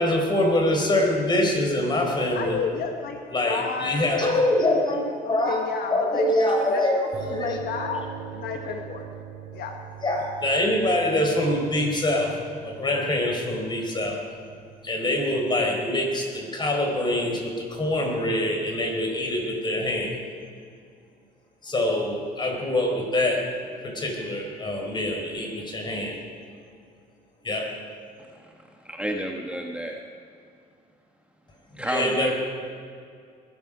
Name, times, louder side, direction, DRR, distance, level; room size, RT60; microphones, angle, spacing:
voice 1, 0.0-2.6 3.3-5.6 5.9-7.0 7.3-7.6 10.0-12.3 12.6-14.2 14.8-20.1 21.6-23.4 23.8-26.2 27.4-27.7 31.8-32.3, left 1 dB, 25° left, 1 dB, 4.1 m, -24 dB
voice 2, 2.3-4.5 5.2-6.3 6.6-8.1 8.3-9.1 9.5-9.8, left 6 dB, 65° left, 4 dB, 1.3 m, -31 dB
sound 1, 7.1-16.2, right 6 dB, 40° right, 2.2 m, -41 dB
voice 3, 28.8-30.0 31.8-32.3, right 1 dB, 5° right, 1 dB, 1.3 m, -30 dB
20.5 x 12.5 x 5.0 m, 2.2 s
cardioid pair, 110°, 17 cm